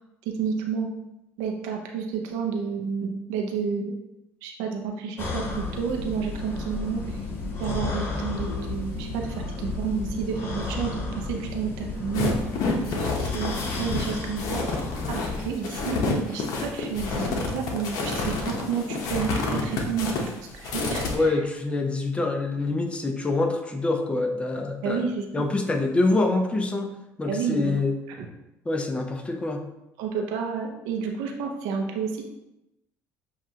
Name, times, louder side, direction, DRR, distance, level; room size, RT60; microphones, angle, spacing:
voice 1, 0.4-0.9 1.4-3.9 4.4-7.2 7.6-12.3 12.9-14.6 15.1-20.1 20.4-21.3 24.8-25.3 27.3-27.7 28.2-28.3 30.0-32.2, right 6 dB, 90° right, 2 dB, 0.6 m, -30 dB
sound 1, 5.2-15.5, left 3 dB, 45° left, 1.1 m, -32 dB
sound 2, 12.1-21.1, left 3 dB, 70° left, 0.8 m, -29 dB
voice 2, 21.1-25.1 25.3-26.9 27.2-27.9 28.6-29.6, left 2 dB, 20° left, 4 dB, 0.7 m, -25 dB
7.1 x 2.4 x 2.8 m, 0.92 s
cardioid pair, 95°, 6 cm